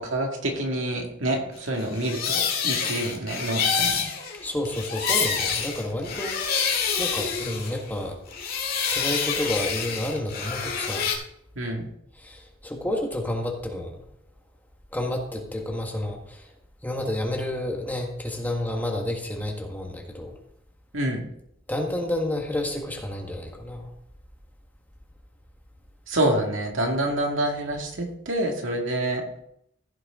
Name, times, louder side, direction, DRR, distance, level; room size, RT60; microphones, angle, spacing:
voice 1, 0.0-4.1 11.6-11.9 20.9-21.2 26.1-29.2, right 1 dB, 70° right, 1 dB, 2.2 m, -27 dB
sound 1, 1.8-8.0 8.3-11.2, left 6 dB, 45° left, 2.1 m, -27 dB
voice 2, 4.4-8.1 8.9-11.1 12.2-13.9 14.9-16.4 16.8-20.3 21.7-23.8, left 1 dB, 10° left, 0 dB, 1.6 m, -30 dB
15.0 x 6.5 x 3.8 m, 0.74 s
head